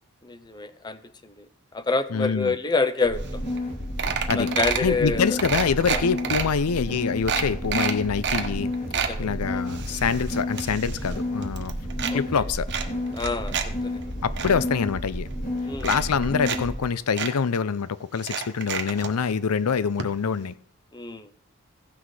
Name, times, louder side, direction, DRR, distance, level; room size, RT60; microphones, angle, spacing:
voice 1, 0.2-1.5 1.7-3.2 4.4-5.4 5.9-6.0 8.9-9.6 12.1-12.4 13.1-14.0 15.7-15.9 20.9-21.3, left 3 dB, 20° left, 0.6 m, -28 dB
voice 2, 2.1-2.6 4.3-4.5 4.8-8.7 9.2-11.7 12.1-12.7 14.2-15.3 15.8-20.5, left 6 dB, 85° left, 0.5 m, -25 dB
sound 1, 3.0-16.7, left 1 dB, 40° left, 2.6 m, -31 dB
sound 2, 3.3-3.4 3.6-3.7 4.0-4.9 5.4-6.4 6.9-7.0 7.3-8.5 8.7-9.1 9.7-11.2 11.4-12.1 12.7-13.7 14.0-14.5 15.3-15.4 15.8-16.6 16.8-16.9 17.2-17.3 18.2-19.1 20.0-20.1 20.4-20.5, right 7 dB, 50° right, 1.1 m, -28 dB
16.0 x 6.1 x 4.8 m
head